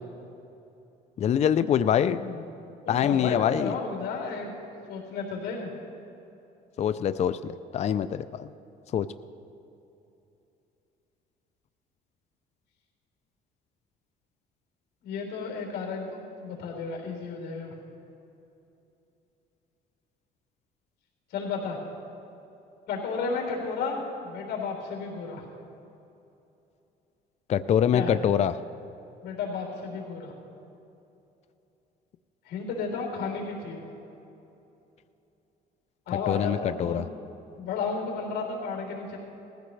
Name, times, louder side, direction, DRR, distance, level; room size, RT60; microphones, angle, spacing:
voice 1, 1.2-2.2 2.9-3.7 6.8-8.5 8.9-9.1 27.5-28.6 36.3-37.1, left 9 dB, 40° left, 13 dB, 0.4 m, -24 dB
voice 2, 2.0-2.4 2.8-4.5 4.9-5.7 15.0-17.7 21.3-21.8 22.9-25.4 27.9-28.1 29.2-30.3 32.5-33.9 36.1-37.0 37.6-39.2, left 4 dB, 80° left, 0 dB, 3.7 m, -33 dB
19.5 x 15.5 x 3.2 m, 2.8 s
cardioid pair, 110°, 17 cm